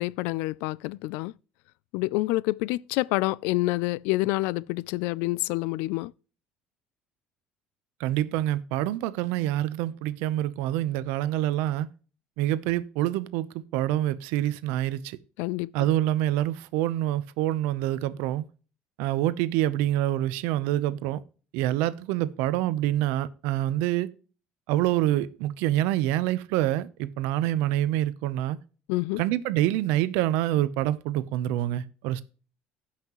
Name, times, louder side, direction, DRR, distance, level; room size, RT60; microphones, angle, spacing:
voice 1, 0.0-1.3 1.9-6.1 15.4-15.9 28.9-29.2, left 20 dB, 85° left, 0.3 m, -27 dB
voice 2, 8.0-11.9 12.4-15.2 15.7-18.5 19.0-21.2 21.5-24.1 24.7-28.6 29.2-32.2, right 14 dB, 90° right, 0.7 m, -26 dB
16.0 x 5.8 x 3.0 m
cardioid pair, 160°, 3 cm